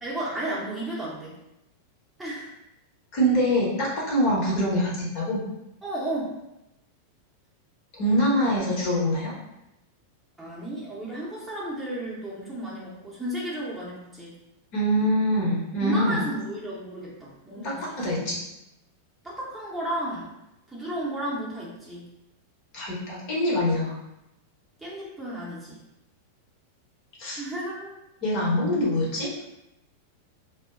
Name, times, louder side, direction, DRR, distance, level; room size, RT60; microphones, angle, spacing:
voice 1, 0.0-1.4 2.2-2.5 4.2-4.3 5.8-6.3 10.4-14.4 15.8-18.4 19.2-20.3 20.7-22.1 24.8-25.8 27.4-28.0, right 1 dB, 5° right, -7 dB, 0.8 m, -33 dB
voice 2, 3.1-5.4 7.9-9.3 14.7-16.2 17.6-18.3 22.7-24.0 27.2-27.4 28.2-29.3, equal, 45° left, -4 dB, 0.9 m, -24 dB
2.1 x 2.0 x 3.6 m, 0.89 s
figure-of-eight pair, 90°, 0 cm